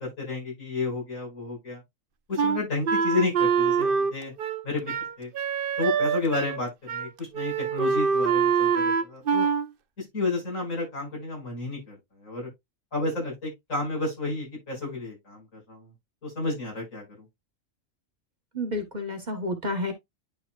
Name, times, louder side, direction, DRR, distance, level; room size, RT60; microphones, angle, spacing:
voice 1, 0.0-1.8 2.3-4.3 4.6-5.3 5.8-9.5 10.0-12.0 12.2-12.5 12.9-15.9 16.2-17.0, left 3 dB, 75° left, 5.8 m, -31 dB
Wind instrument woodwind instrument, 2.4-6.6 6.9-7.1 7.3-9.7, right 6 dB, 55° right, 0.7 m, -25 dB
voice 2, 18.5-19.9, left 1 dB, 35° right, 1.2 m, -30 dB
10.5 x 4.8 x 2.4 m
omnidirectional pair, 1.4 m